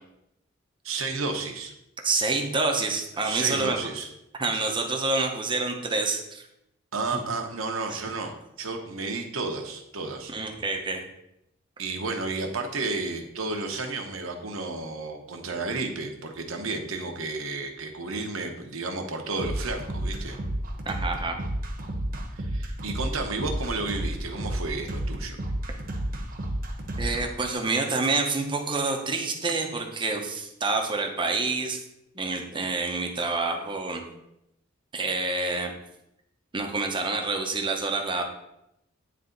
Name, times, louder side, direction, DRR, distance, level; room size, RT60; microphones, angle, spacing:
voice 1, 0.8-1.7 3.2-4.1 4.5-4.6 6.9-10.3 11.8-20.4 22.3-25.4, right 3 dB, 85° right, 3 dB, 1.0 m, -32 dB
voice 2, 2.0-3.8 4.4-6.5 7.1-7.2 7.9-8.0 10.3-11.0 20.9-21.4 27.0-31.8 32.1-34.0 34.9-35.7 36.5-38.2, right 3 dB, 25° right, 3 dB, 0.8 m, -27 dB
sound 1, 19.4-27.2, right 1 dB, 45° right, 1.0 m, -31 dB
9.4 x 3.4 x 3.9 m, 0.84 s
head